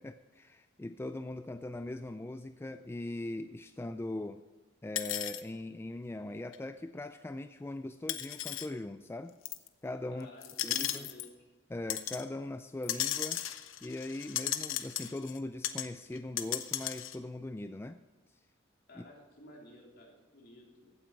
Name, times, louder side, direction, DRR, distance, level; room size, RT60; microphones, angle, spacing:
voice 1, 0.0-4.4 4.8-9.3 9.8-10.3 10.6-11.1 11.7-13.4 13.8-18.0 18.9-19.0, left 2 dB, 10° left, 9 dB, 0.3 m, -40 dB
sound 1, 5.0-5.4 6.5-6.6 8.1-8.7 9.5-9.7 10.4-11.3 11.9-12.2 12.8-15.4 15.6-15.9 16.2-17.2, left 12 dB, 85° left, 0.8 m, -35 dB
voice 2, 10.1-11.3 18.9-20.9, left 1 dB, 55° left, -2 dB, 3.3 m, -53 dB
15.5 x 9.1 x 4.7 m, 1.4 s
head